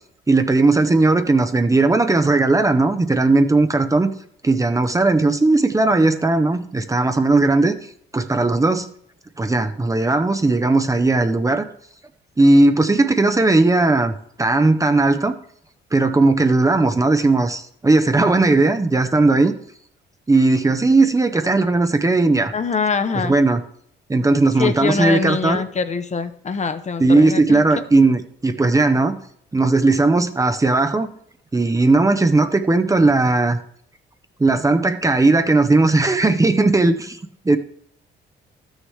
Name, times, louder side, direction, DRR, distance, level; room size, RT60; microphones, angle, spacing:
voice 1, 0.3-4.1 4.4-7.7 8.1-8.9 9.4-11.6 12.4-14.1 14.4-15.3 15.9-19.5 20.3-22.5 23.2-23.6 24.1-25.6 27.0-29.2 29.5-31.1 31.5-33.6 34.4-37.2 37.4-37.6, right 2 dB, 15° right, 8 dB, 0.7 m, -17 dB
voice 2, 22.5-23.4 24.6-27.6, left 5 dB, 35° left, 10 dB, 0.8 m, -23 dB
13.5 x 6.4 x 3.2 m, 0.66 s
cardioid pair, 90°, 20 cm